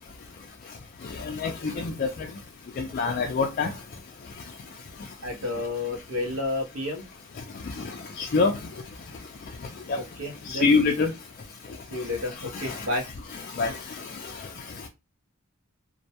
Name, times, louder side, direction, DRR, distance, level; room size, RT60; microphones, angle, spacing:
voice 1, 1.0-2.3 2.8-3.7 7.6-8.6 9.9-10.0 10.5-11.1 12.5-12.9 13.3-14.3, left 4 dB, 40° left, 0.3 m, -26 dB
voice 2, 5.2-7.0 9.9-10.7 11.9-13.0, left 2 dB, 75° right, 0.8 m, -31 dB
2.2 x 2.1 x 2.7 m
head